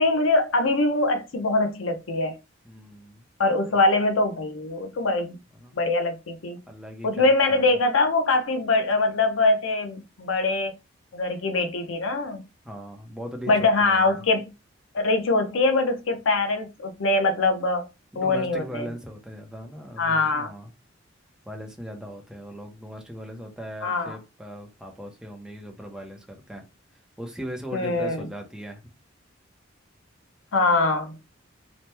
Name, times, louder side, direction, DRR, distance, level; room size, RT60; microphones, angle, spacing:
voice 1, 0.0-2.4 3.4-5.4 5.8-6.6 7.0-10.7 11.1-12.4 13.5-14.5 14.9-17.9 18.2-18.9 20.0-20.5 23.8-24.2 27.7-28.3 30.5-31.2, left 2 dB, 85° left, 0.7 m, -23 dB
voice 2, 2.6-3.2 3.7-3.8 5.5-5.7 6.7-7.8 12.6-14.2 18.1-20.7 21.4-26.7 27.2-28.8, equal, 5° right, 0.6 m, -39 dB
3.0 x 2.1 x 3.3 m
head